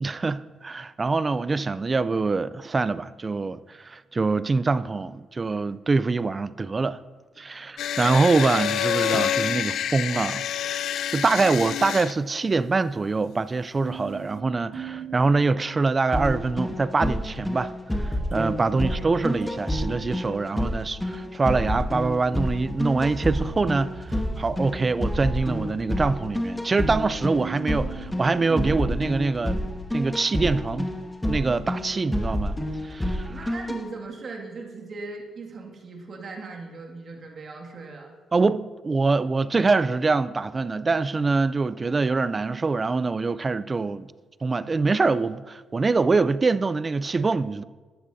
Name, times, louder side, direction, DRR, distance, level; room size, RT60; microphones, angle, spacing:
voice 1, 0.0-7.0 7.4-10.4 11.1-17.7 18.3-29.7 29.9-30.9 31.3-32.6 32.8-33.5 38.3-44.1 44.4-47.6, right 3 dB, 30° right, 0.4 m, -24 dB
sound 1, 7.8-12.1, left 10 dB, 75° left, 0.4 m, -27 dB
sound 2, 13.8-16.4 18.0-21.0 22.4-29.8, right 5 dB, 75° right, 2.0 m, -41 dB
sound 3, 16.1-33.8, left 1 dB, 10° left, 1.2 m, -29 dB
voice 2, 18.6-19.1 33.3-38.1, right 3 dB, 50° right, 2.1 m, -39 dB
14.0 x 11.0 x 2.7 m
cardioid pair, 90°, 0 cm